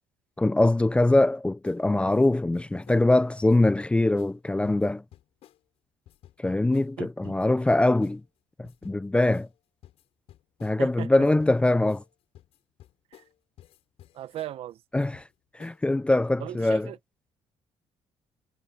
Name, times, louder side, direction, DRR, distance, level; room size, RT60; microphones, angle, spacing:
voice 1, 0.4-5.0 6.4-8.2 8.6-9.5 10.6-12.0 14.9-15.2 15.5-16.9, left 2 dB, 10° left, 0.4 m, -23 dB
sound 1, 1.6-1.8 2.1-3.1 3.5-3.8 4.2-4.3 4.6-5.6 6.1-6.4 6.7-6.9 7.2-8.2 8.6-9.0 9.3-9.5 9.8-10.8 11.2-11.6 11.9-12.1 12.3-13.3 13.6-14.5 15.0-15.3 15.6-15.9, left 12 dB, 75° left, 6.8 m, -53 dB
voice 2, 7.0-7.3 10.8-11.1 13.1-13.2 14.1-14.8 16.4-17.0, right 12 dB, 70° right, 1.3 m, -37 dB
cardioid pair, 105°, 10 cm